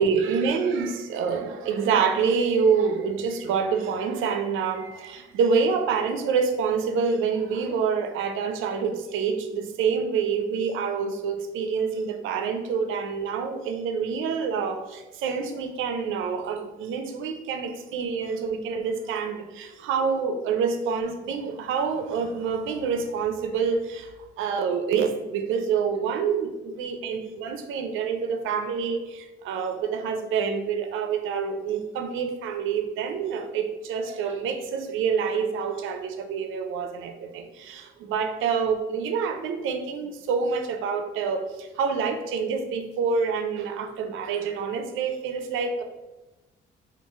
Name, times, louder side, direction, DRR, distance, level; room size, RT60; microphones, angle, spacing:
voice 1, 0.0-24.1 24.4-45.8, right 6 dB, 85° right, 6 dB, 0.4 m, -27 dB
3.0 x 2.4 x 3.4 m, 1.1 s
cardioid pair, 90°, 20 cm